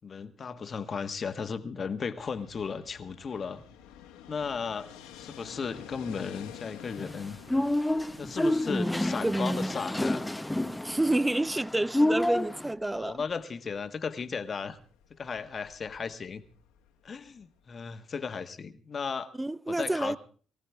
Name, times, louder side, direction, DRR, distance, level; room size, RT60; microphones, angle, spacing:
voice 1, 0.0-3.6 4.3-7.4 8.2-10.3 12.9-14.8 15.2-16.4 17.0-19.3 19.7-20.2, left 5 dB, 45° left, 1.4 m, -35 dB
Fixed-wing aircraft airplane, 2.2-17.9, left 9 dB, 80° left, 1.8 m, -51 dB
sound 1, 7.0-12.7, left 1 dB, 10° left, 1.1 m, -29 dB
voice 2, 9.2-9.7 10.8-13.2 19.4-20.2, right 1 dB, 15° right, 0.6 m, -29 dB
22.5 x 14.5 x 3.4 m
hypercardioid pair, 50°, 0 cm